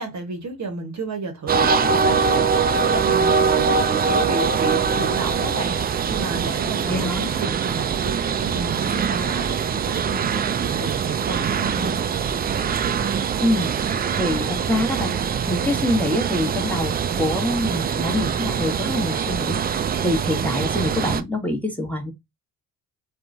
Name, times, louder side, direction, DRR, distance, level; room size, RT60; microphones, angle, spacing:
voice 1, 0.0-11.9, right 3 dB, 40° right, 0.9 m, -32 dB
sound 1, 1.5-21.2, right 6 dB, 25° right, 0.3 m, -23 dB
voice 2, 6.8-7.3 13.4-15.1 15.5-22.1, left 1 dB, 5° left, 1.0 m, -25 dB
2.9 x 2.3 x 2.4 m
hypercardioid pair, 45°, 46 cm